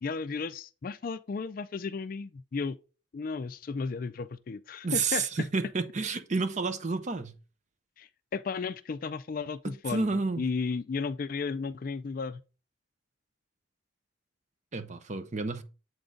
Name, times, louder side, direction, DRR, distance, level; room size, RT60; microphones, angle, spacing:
voice 1, 0.0-2.8 3.1-5.5 8.0-12.4, left 4 dB, 45° left, 0.4 m, -34 dB
voice 2, 4.8-7.3 9.6-10.4 14.7-15.6, right 4 dB, 35° right, 0.6 m, -30 dB
7.8 x 3.8 x 3.8 m
head